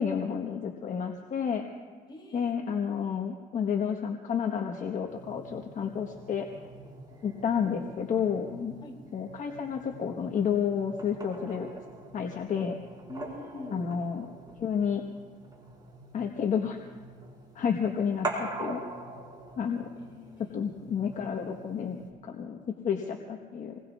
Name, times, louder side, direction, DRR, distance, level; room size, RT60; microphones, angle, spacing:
voice 1, 0.0-1.7 2.3-6.5 7.2-8.8 9.1-11.7 12.1-12.8 13.7-14.3 14.6-15.0 16.1-16.8 17.5-18.8 19.6-19.9 20.4-23.8, left 7 dB, 45° left, 2 dB, 1.2 m, -30 dB
voice 2, 2.1-2.7 8.8-9.0 13.1-13.9 20.0-20.6, left 2 dB, 30° left, 0 dB, 3.0 m, -45 dB
sound 1, 5.1-22.1, right 2 dB, 25° right, 3.7 m, -44 dB
27.5 x 20.5 x 2.4 m, 1.5 s
cardioid pair, 110°, 17 cm